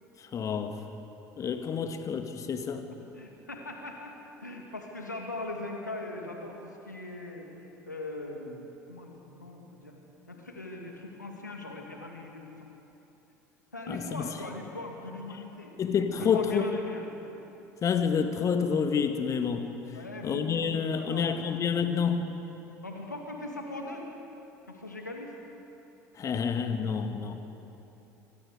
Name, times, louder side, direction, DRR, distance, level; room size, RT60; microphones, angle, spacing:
voice 1, 0.3-0.7 1.4-2.8 13.9-14.2 15.8-16.6 17.8-19.7 20.2-22.2 26.2-27.3, left 6 dB, 35° left, 7 dB, 1.9 m, -28 dB
voice 2, 3.1-4.2 4.4-9.9 10.3-12.7 13.7-15.8 16.1-17.1 19.9-20.5 20.8-21.2 22.8-24.1 24.7-25.4 26.5-27.1, left 2 dB, 85° left, 1 dB, 2.5 m, -40 dB
25.5 x 25.0 x 5.1 m, 3.0 s
figure-of-eight pair, 65°, 9 cm